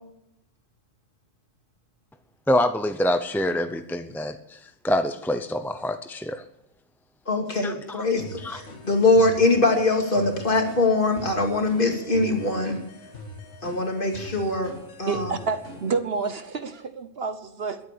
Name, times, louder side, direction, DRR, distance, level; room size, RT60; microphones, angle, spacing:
voice 1, 2.5-6.4 7.6-8.1 8.4-8.6, left 1 dB, 5° left, 9 dB, 0.4 m, -26 dB
voice 2, 7.3-12.8 13.6-14.7 15.0-15.3, left 2 dB, 45° left, 2 dB, 2.7 m, -22 dB
sound 1, 8.2-16.0, left 2 dB, 70° left, 2.4 m, -43 dB
voice 3, 15.1-17.8, right 4 dB, 55° right, 10 dB, 1.1 m, -29 dB
21.5 x 8.8 x 6.8 m, 0.85 s
omnidirectional pair, 1.3 m